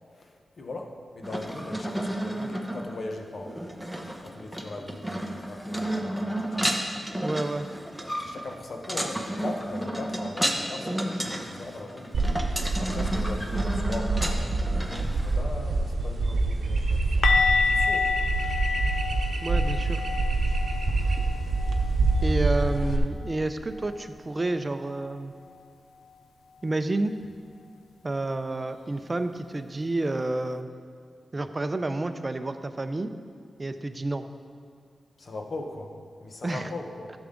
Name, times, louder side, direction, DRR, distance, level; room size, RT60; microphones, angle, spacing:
voice 1, 0.6-3.5 4.2-6.7 8.2-12.1 12.8-14.5 15.2-17.2 17.7-18.1 35.2-35.9 36.2-37.1, left 2 dB, 60° left, 3 dB, 1.0 m, -39 dB
sound 1, 1.2-15.4, right 1 dB, ahead, 1.0 m, -32 dB
voice 2, 7.2-7.7 19.4-20.0 22.2-25.3 26.6-27.2 28.0-30.7 31.3-33.1 33.6-34.2 36.4-36.7, right 2 dB, 30° right, 9 dB, 0.5 m, -29 dB
sound 2, 12.1-23.0, right 3 dB, 65° right, 0.9 m, -26 dB
sound 3, 17.2-23.0 23.3-23.5 23.8-24.0 27.2-27.3, left 5 dB, 85° left, 0.4 m, -29 dB
12.0 x 7.1 x 3.8 m, 2.2 s
cardioid pair, 80°, 0 cm